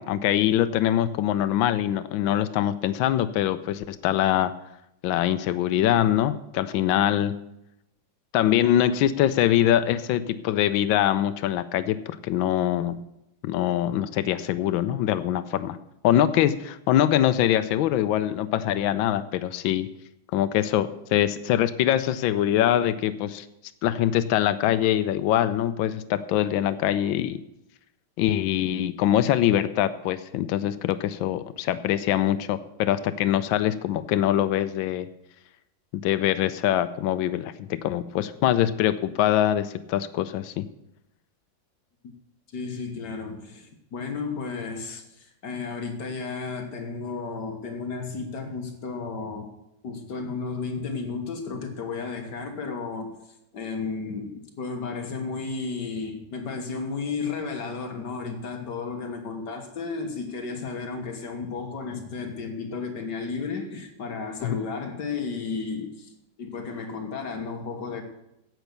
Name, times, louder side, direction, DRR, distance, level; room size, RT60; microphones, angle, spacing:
voice 1, 0.0-4.5 5.0-7.3 8.3-13.0 13.4-15.8 16.0-19.9 20.3-23.5 23.8-27.4 28.2-35.1 35.9-40.6 64.4-64.6, left 11 dB, 90° left, 13 dB, 1.4 m, -23 dB
voice 2, 42.5-49.5 49.8-53.1 53.5-66.1 66.4-68.0, left 4 dB, 60° left, 4 dB, 1.9 m, -33 dB
10.5 x 8.1 x 6.8 m, 0.85 s
omnidirectional pair, 2.1 m